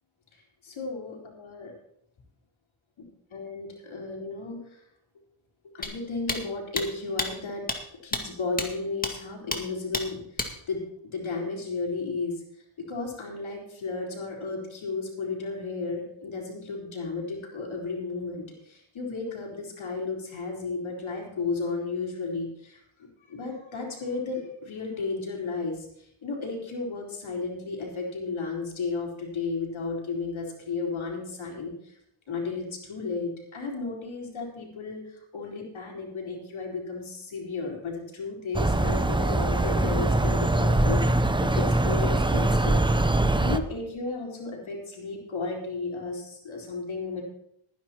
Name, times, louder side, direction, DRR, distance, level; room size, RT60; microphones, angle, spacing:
voice 1, 0.6-1.7 3.3-4.6 5.7-7.6 8.0-10.8 11.1-12.4 12.9-22.8 23.3-25.9 26.2-31.7 32.3-35.0 35.3-42.8 43.4-47.2, left 4 dB, 70° left, -1 dB, 4.3 m, -33 dB
sound 1, 5.8-5.9 6.3-6.4 6.8-6.9 7.2-7.3 7.7-7.8 8.1-8.2 8.6-8.7 9.0-9.1 9.5-9.6 9.9-10.0 10.4-10.5, left 2 dB, 20° left, 2.0 m, -29 dB
sound 2, 38.5-43.6, right 2 dB, 10° right, 0.7 m, -23 dB
20.5 x 10.0 x 3.0 m, 0.71 s
cardioid pair, 75°, 48 cm